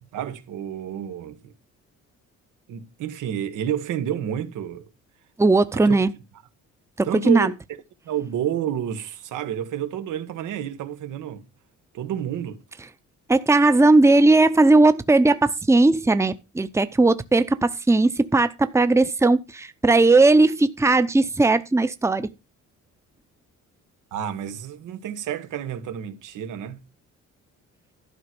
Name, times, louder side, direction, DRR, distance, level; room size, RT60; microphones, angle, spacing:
voice 1, 0.0-1.5 2.7-4.8 5.7-5.9 7.1-7.5 8.0-11.4 11.9-12.6 24.1-26.8, right 10 dB, 85° right, 1.5 m, -30 dB
voice 2, 5.4-6.1 7.0-7.5 13.3-22.3, right 2 dB, 10° right, 0.8 m, -18 dB
12.0 x 4.7 x 6.1 m
cardioid pair, 90°, 30 cm